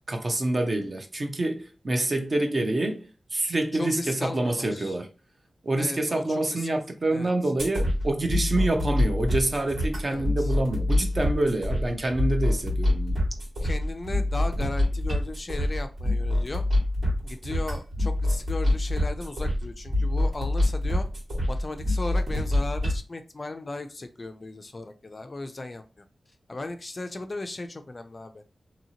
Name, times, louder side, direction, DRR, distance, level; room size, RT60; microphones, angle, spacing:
voice 1, 0.1-5.1 5.6-13.2, right 2 dB, 35° right, 0.5 m, -27 dB
voice 2, 3.7-5.0 5.8-6.7 7.1-7.3 10.1-10.5 13.6-16.6 17.2-21.1 21.5-26.0 26.5-28.4, left 2 dB, 30° left, 0.3 m, -36 dB
sound 1, 7.6-23.0, left 1 dB, 85° right, 1.8 m, -26 dB
2.8 x 2.8 x 2.7 m
wide cardioid pair, 150°, 0 cm